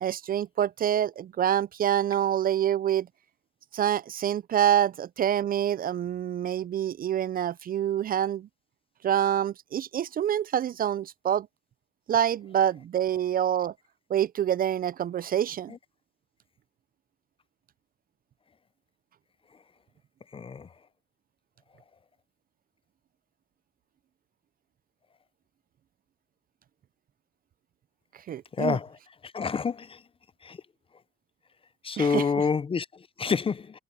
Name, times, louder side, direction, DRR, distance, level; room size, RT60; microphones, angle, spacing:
voice 1, 0.0-3.1 3.7-8.5 9.0-11.5 12.1-13.7 14.1-15.8 28.3-28.8 32.0-32.2, right 10 dB, 45° right, 0.4 m, -26 dB
voice 2, 20.3-20.7 28.5-29.0 29.2-30.0 30.4-30.6 31.8-33.8, left 5 dB, 25° left, 0.5 m, -28 dB
cardioid pair, 90°, 20 cm